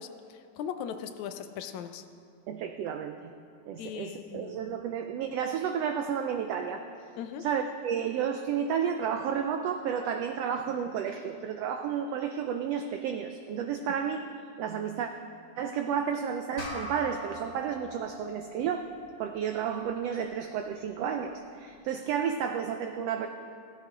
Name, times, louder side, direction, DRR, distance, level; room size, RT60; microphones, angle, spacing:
voice 1, 0.0-2.0 3.8-4.6 7.2-7.5, left 8 dB, 75° left, 8 dB, 2.0 m, -39 dB
voice 2, 2.5-3.2 3.7-6.9 7.4-14.3 14.6-15.1 15.6-18.9 19.2-23.3, right 7 dB, 85° right, 6 dB, 1.4 m, -31 dB
sound 1, 16.6-21.3, equal, 55° left, 3.0 m, -44 dB
16.0 x 15.0 x 3.8 m, 2.3 s
omnidirectional pair, 3.5 m